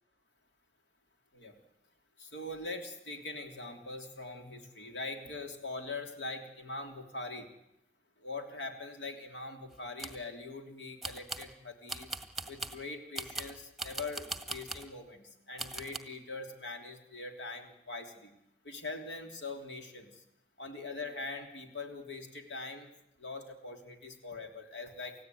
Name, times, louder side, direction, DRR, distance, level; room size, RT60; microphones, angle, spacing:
voice 1, 2.2-7.5 8.2-12.1 12.4-18.3 18.6-20.2 20.6-22.9 23.2-25.1, left 3 dB, 75° left, 4 dB, 3.4 m, -42 dB
sound 1, 9.7-10.2 11.0-11.5 11.9-12.8 13.1-14.9 15.6-16.0, right 2 dB, ahead, 1.7 m, -40 dB
29.5 x 16.5 x 9.4 m, 0.85 s
head